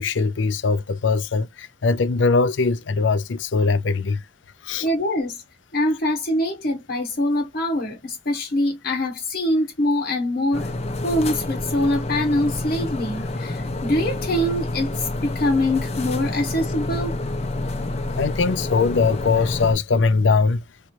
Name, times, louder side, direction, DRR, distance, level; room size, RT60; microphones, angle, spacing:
voice 1, 0.0-4.2 4.7-4.9 18.2-20.6, left 4 dB, 85° left, 0.5 m, -21 dB
voice 2, 4.8-5.4 5.7-10.6 11.0-17.2, left 1 dB, 55° left, 0.9 m, -24 dB
sound 1, 10.5-19.7, left 2 dB, 35° left, 0.6 m, -28 dB
3.2 x 2.9 x 2.9 m
head